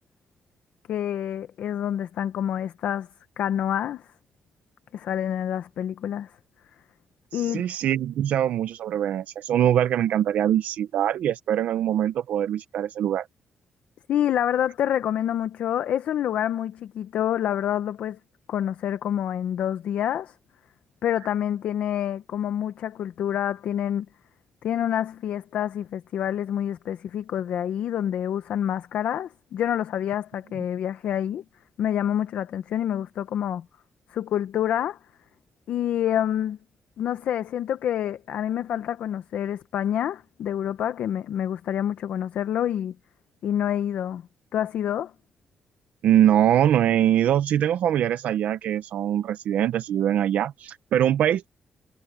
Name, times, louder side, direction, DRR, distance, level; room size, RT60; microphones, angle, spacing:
voice 1, 0.9-3.1 3.4-4.0 4.9-6.3 7.3-7.7 14.1-18.2 18.5-20.3 21.0-24.1 24.6-31.4 31.8-33.6 34.1-35.0 35.7-36.6 37.0-42.9 43.4-44.2 44.5-45.1, left 10 dB, 80° left, 0.9 m, -27 dB
voice 2, 7.3-13.3 46.0-51.5, right 10 dB, 85° right, 0.8 m, -23 dB
cardioid pair, 95°, 3 cm